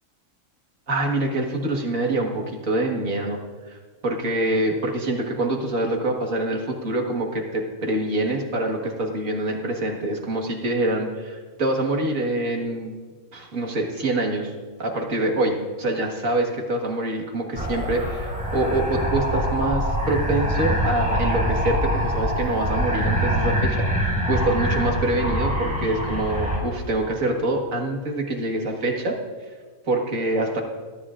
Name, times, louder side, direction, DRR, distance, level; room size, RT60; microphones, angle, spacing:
voice 1, 0.9-3.4 3.7-13.0 13.3-14.5 14.8-23.8 24.0-29.2 29.9-30.6, right 2 dB, 75° right, 1 dB, 2.0 m, -25 dB
sound 1, 17.5-26.6, equal, 5° right, 4.9 m, -24 dB
22.5 x 13.0 x 2.5 m, 1.5 s
omnidirectional pair, 1.4 m